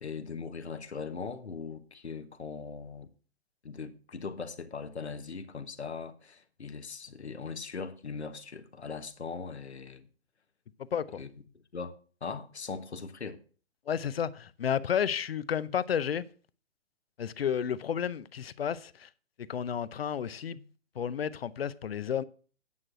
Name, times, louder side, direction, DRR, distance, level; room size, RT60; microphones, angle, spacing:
voice 1, 0.0-3.1 3.6-10.0 11.1-11.3 11.7-11.9 12.2-13.4, left 5 dB, 80° left, 1.3 m, -40 dB
voice 2, 10.8-11.2 13.9-16.3 17.2-19.1 19.4-20.7 20.9-22.2, left 8 dB, 60° left, 0.7 m, -32 dB
9.7 x 6.1 x 6.3 m
figure-of-eight pair, 130°, 33 cm